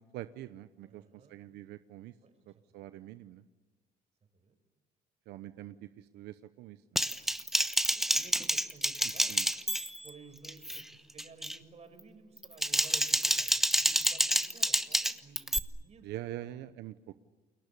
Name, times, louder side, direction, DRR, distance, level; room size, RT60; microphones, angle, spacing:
voice 1, 0.1-1.0 1.3-2.1 2.7-3.4 5.3-6.8 9.3-9.5 16.0-16.9, right 14 dB, 80° right, 12 dB, 0.9 m, -44 dB
voice 2, 0.8-1.4 2.2-2.9 4.3-4.5 5.7-5.8 7.9-16.1 16.4-16.5, right 5 dB, 40° right, 8 dB, 5.6 m, -55 dB
Typing, 7.0-10.1 10.4-10.8 11.2-11.6 12.4-15.6, equal, ahead, 1.1 m, -28 dB
29.5 x 22.5 x 8.5 m, 1.2 s
cardioid pair, 110°, 17 cm